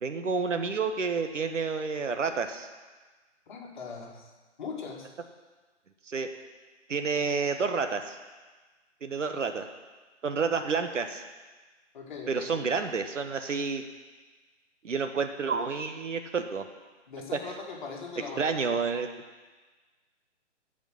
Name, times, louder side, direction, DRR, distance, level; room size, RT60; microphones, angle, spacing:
voice 1, 0.0-2.7 6.1-6.3 6.9-8.2 9.0-9.7 10.2-11.2 12.3-13.8 14.8-16.6 17.3-17.4 18.4-19.1, right 5 dB, 85° right, 6 dB, 1.3 m, -29 dB
voice 2, 3.5-4.3 4.6-5.1 7.2-7.3 11.9-12.8 17.1-18.8, left 4 dB, 40° left, 0 dB, 2.0 m, -40 dB
15.0 x 5.1 x 6.4 m, 1.3 s
hypercardioid pair, 160°, 36 cm